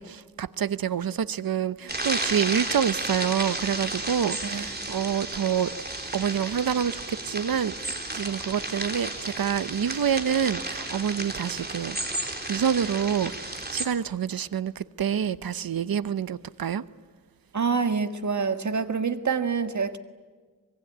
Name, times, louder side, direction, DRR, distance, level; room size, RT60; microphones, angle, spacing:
voice 1, 0.0-5.7 6.1-12.0 12.5-13.3 13.7-16.8, right 8 dB, 80° right, 15 dB, 0.8 m, -27 dB
sound 1, 1.9-13.9, right 2 dB, 30° right, 3.7 m, -33 dB
voice 2, 17.5-20.0, right 5 dB, 55° right, 8 dB, 1.7 m, -26 dB
24.5 x 22.0 x 10.0 m, 1.5 s
wide cardioid pair, 110°, 35 cm